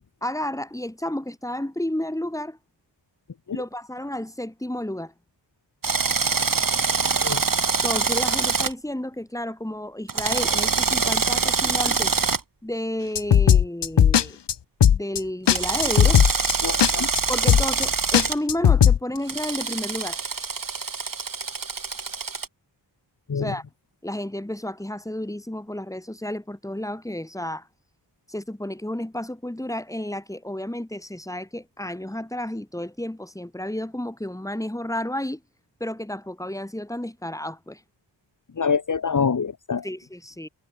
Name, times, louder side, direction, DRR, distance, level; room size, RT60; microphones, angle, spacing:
voice 1, 0.2-2.6 3.5-5.1 7.8-12.3 12.6-14.4 14.9-16.2 17.3-20.2 23.3-23.6 24.0-27.7 28.3-35.4 35.8-37.8 39.8-40.5, left 1 dB, 5° left, 6.1 m, -31 dB
Drill, 5.8-8.7 10.1-12.4 15.5-18.4 19.3-22.5, right 5 dB, 45° right, 6.6 m, -24 dB
sound 1, 13.1-14.2 14.5-14.6 14.8-15.2 15.5-15.6 15.8-16.5 16.8-16.9 17.2-17.3 17.5-17.9 18.1-19.0, left 9 dB, 65° left, 1.2 m, -16 dB
voice 2, 16.6-17.1 23.3-23.5 38.6-39.8, left 6 dB, 45° left, 1.7 m, -25 dB
wide cardioid pair, 130°, 44 cm